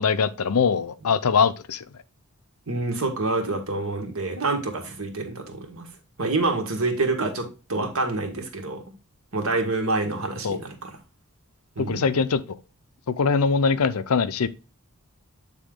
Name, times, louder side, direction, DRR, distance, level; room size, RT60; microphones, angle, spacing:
voice 1, 0.0-1.8 10.4-10.6 11.8-12.6 13.1-14.5, left 5 dB, 90° left, 0.6 m, -22 dB
voice 2, 2.7-5.9 6.2-8.8 9.3-10.8 11.7-12.0, right 3 dB, 70° right, 1.6 m, -27 dB
8.3 x 3.7 x 3.7 m
head